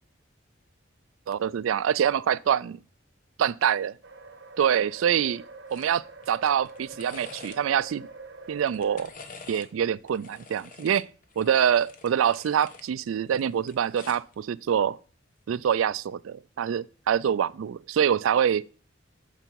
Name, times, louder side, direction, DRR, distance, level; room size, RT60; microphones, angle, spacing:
voice 1, 1.3-2.8 3.4-3.9 4.6-5.4 5.7-8.1 8.5-9.1 9.5-11.1 11.4-15.0 15.5-18.6, right 8 dB, 85° right, 0.3 m, -25 dB
sound 1, 4.0-9.1, right 3 dB, 60° right, 1.3 m, -45 dB
sound 2, 5.7-5.9 6.2-7.9 8.6-9.7 10.1-12.9 13.2-14.3 15.5-15.7, left 4 dB, 40° left, 1.1 m, -48 dB
9.0 x 6.8 x 4.6 m
head